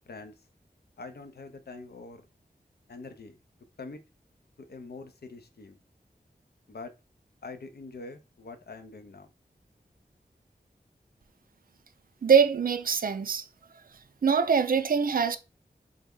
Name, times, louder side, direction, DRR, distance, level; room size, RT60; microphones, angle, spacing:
voice 1, 0.1-0.4 1.0-2.2 2.9-3.4 3.8-4.0 4.7-5.8 6.7-6.9 7.4-9.3, left 3 dB, 75° left, 0.6 m, -44 dB
voice 2, 12.2-13.5 14.2-15.4, right 6 dB, 60° right, 0.4 m, -23 dB
3.4 x 2.0 x 3.6 m
wide cardioid pair, 65°, 17 cm